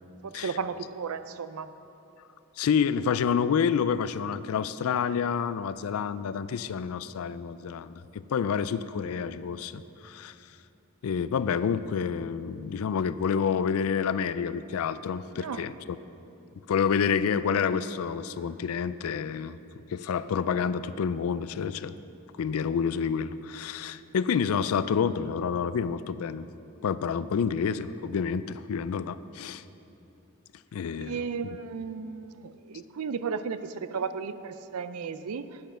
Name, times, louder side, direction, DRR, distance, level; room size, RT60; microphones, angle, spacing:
voice 1, 0.2-1.7 15.4-15.7 31.0-35.6, right 5 dB, 85° right, 12 dB, 0.5 m, -34 dB
voice 2, 2.6-10.3 11.0-16.0 16.7-19.6 19.9-21.9 22.4-26.5 26.8-29.6 30.7-31.3, left 6 dB, 75° left, 15 dB, 0.4 m, -28 dB
8.8 x 7.8 x 6.2 m, 2.8 s
head